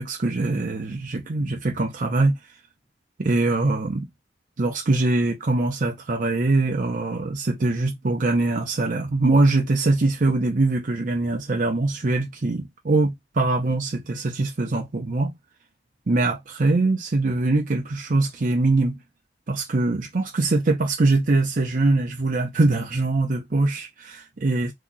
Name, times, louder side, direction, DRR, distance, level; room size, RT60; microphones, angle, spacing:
voice 1, 0.0-2.4 3.2-4.1 4.6-15.3 16.1-19.0 19.5-24.7, right 2 dB, 50° right, 0.6 m, -22 dB
2.9 x 2.3 x 3.8 m
head